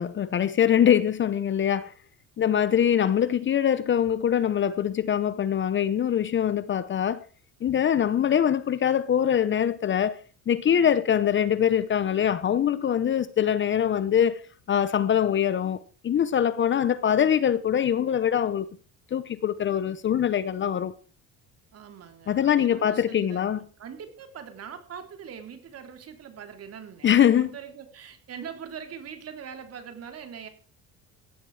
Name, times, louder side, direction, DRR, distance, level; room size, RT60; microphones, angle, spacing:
voice 1, 0.0-1.9 2.4-7.2 7.6-10.2 10.5-14.4 14.7-15.8 16.0-18.7 19.1-20.9 22.3-23.6 27.0-27.5, left 9 dB, 35° left, 0.9 m, -23 dB
voice 2, 21.7-30.5, right 7 dB, 40° right, 3.6 m, -42 dB
17.0 x 13.0 x 4.9 m
cardioid pair, 140°, 35 cm